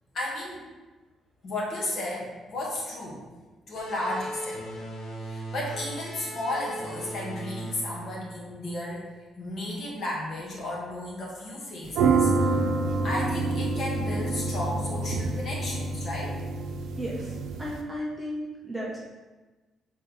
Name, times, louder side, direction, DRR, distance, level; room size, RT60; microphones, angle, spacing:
voice 1, 0.1-0.6 1.4-3.2 3.7-4.7 5.2-12.7 13.0-16.4, left 1 dB, 40° left, -4 dB, 1.5 m, -34 dB
sound 1, 3.8-9.0, right 1 dB, 60° left, 1.0 m, -38 dB
sound 2, 11.9-17.8, right 3 dB, 85° right, 0.6 m, -27 dB
voice 2, 17.0-19.0, equal, 5° right, -5 dB, 0.7 m, -34 dB
6.4 x 3.8 x 3.9 m, 1.2 s
cardioid pair, 180°, 0 cm